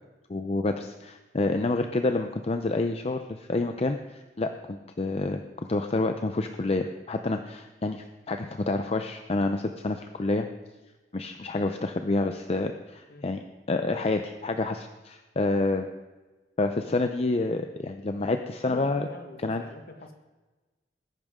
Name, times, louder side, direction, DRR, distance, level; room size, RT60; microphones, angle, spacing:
voice 1, 0.3-10.5 11.1-13.4 13.7-15.9 16.6-19.1 19.4-19.6, left 2 dB, 35° left, 6 dB, 0.6 m, -28 dB
voice 2, 18.6-20.1, left 2 dB, 55° left, 5 dB, 1.5 m, -43 dB
19.5 x 10.5 x 3.7 m, 1.2 s
head